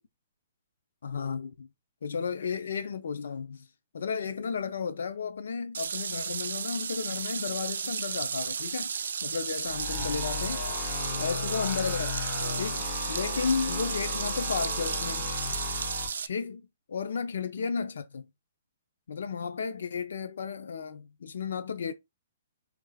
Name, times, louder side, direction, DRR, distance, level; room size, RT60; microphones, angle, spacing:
voice 1, 1.0-1.7 2.0-3.7 3.9-8.9 9.2-10.6 11.2-12.1 12.6-15.3 16.2-18.2 19.1-21.9, left 5 dB, 75° left, 0.6 m, -33 dB
sound 1, 5.7-16.3, right 6 dB, 75° right, 0.4 m, -34 dB
sound 2, 9.6-16.1, left 4 dB, 20° left, 1.9 m, -35 dB
4.8 x 3.4 x 2.3 m
hypercardioid pair, 170°, 0 cm